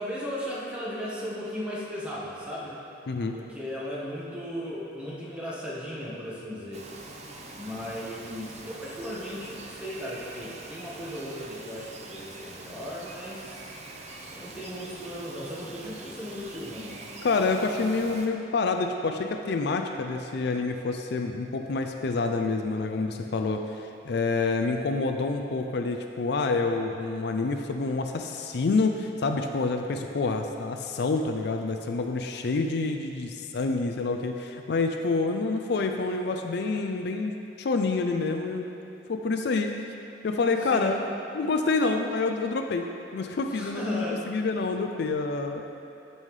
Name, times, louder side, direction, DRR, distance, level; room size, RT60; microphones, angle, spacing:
voice 1, 0.0-2.8 3.3-6.8 7.5-13.7 14.3-17.0 40.7-40.9 43.5-44.2, equal, 5° right, -7 dB, 1.4 m, -36 dB
voice 2, 3.1-3.4 17.2-38.7 39.1-39.7 40.2-41.1 41.3-45.6, left 3 dB, 60° left, 5 dB, 0.4 m, -27 dB
Bird vocalization bird call bird song, 6.7-18.3, right 2 dB, 40° right, 0.6 m, -44 dB
13.0 x 5.5 x 3.2 m, 2.7 s
head